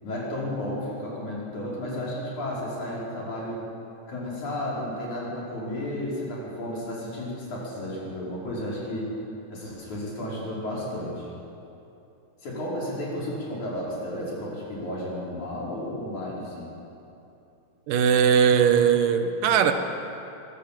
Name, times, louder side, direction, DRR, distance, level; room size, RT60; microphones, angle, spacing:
voice 1, 0.0-3.6 4.1-9.1 9.5-11.3 12.4-16.7, left 1 dB, 60° left, -5 dB, 6.3 m, -33 dB
voice 2, 17.9-19.7, right 7 dB, 80° right, 7 dB, 2.7 m, -19 dB
23.0 x 17.0 x 7.6 m, 2.8 s
omnidirectional pair, 3.8 m